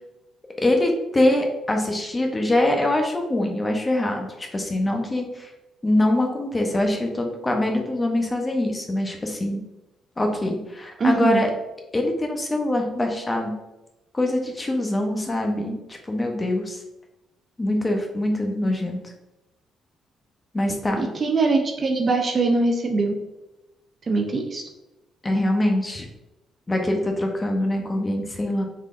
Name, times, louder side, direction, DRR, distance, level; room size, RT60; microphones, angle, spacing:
voice 1, 0.6-5.5 5.8-9.6 10.2-11.5 11.9-13.5 14.1-16.8 17.6-19.0 20.5-21.1 25.2-26.1 26.7-28.6, left 1 dB, 20° left, 2 dB, 0.7 m, -23 dB
voice 2, 11.0-11.4 21.0-23.1 24.1-24.6, right 3 dB, 40° right, 3 dB, 0.5 m, -22 dB
3.7 x 3.2 x 2.4 m, 0.98 s
cardioid pair, 85°, 0 cm